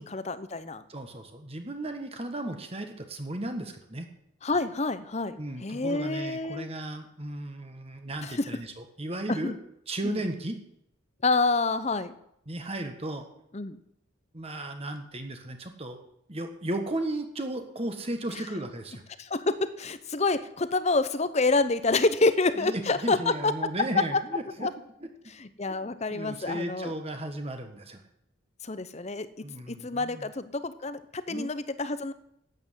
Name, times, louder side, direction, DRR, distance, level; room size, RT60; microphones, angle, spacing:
voice 1, 0.0-0.8 4.4-6.7 8.2-8.5 9.3-9.5 10.0-10.2 11.2-12.2 13.5-13.8 19.2-23.7 24.0-24.2 24.6-24.7 25.4-26.9 28.6-29.3 29.7-32.1, left 3 dB, 35° left, 13 dB, 0.8 m, -27 dB
voice 2, 0.9-4.1 5.4-9.6 9.9-10.6 12.5-13.3 14.3-16.0 16.3-19.0 22.6-24.7 25.0-25.1 25.8-28.0 29.4-30.3 31.3-31.5, right 1 dB, 30° right, 5 dB, 1.4 m, -35 dB
12.0 x 8.8 x 7.5 m, 0.76 s
head